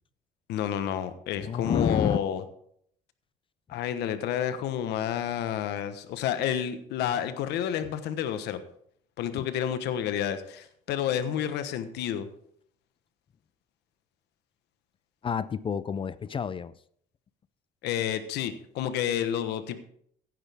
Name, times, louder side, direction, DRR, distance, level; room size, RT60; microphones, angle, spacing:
voice 1, 0.5-2.4 3.7-8.6 9.2-12.3 17.8-19.8, left 10 dB, 85° left, 1.2 m, -30 dB
voice 2, 1.4-2.2 9.4-9.5 15.2-16.8, left 7 dB, 30° left, 0.4 m, -29 dB
15.5 x 10.0 x 3.6 m
cardioid pair, 110°, 17 cm